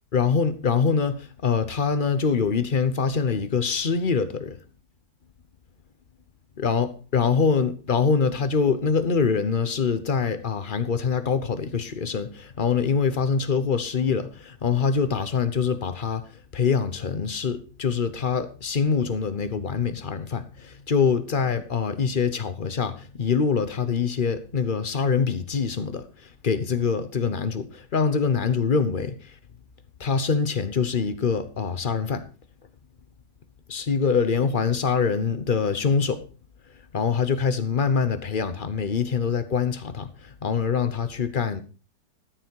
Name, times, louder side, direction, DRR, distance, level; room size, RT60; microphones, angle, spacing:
voice 1, 0.1-4.6 6.6-16.3 16.5-26.0 26.4-29.2 30.0-32.3 33.7-36.2 36.9-41.6, left 5 dB, 35° left, 0.9 m, -24 dB
13.0 x 8.1 x 4.7 m
omnidirectional pair, 1.9 m